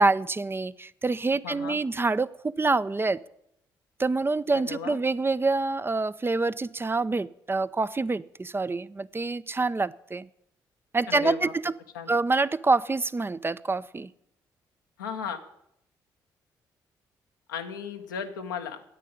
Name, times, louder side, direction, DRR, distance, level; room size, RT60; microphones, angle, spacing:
voice 1, 0.0-3.2 4.0-10.3 10.9-11.7 12.1-14.1, right 3 dB, 20° right, 15 dB, 0.5 m, -26 dB
voice 2, 1.4-1.8 4.5-5.0 11.1-11.5 11.9-12.1 15.0-15.4 17.5-18.8, left 7 dB, 90° left, 5 dB, 0.9 m, -35 dB
10.0 x 8.4 x 9.4 m, 0.78 s
hypercardioid pair, 45°, 10 cm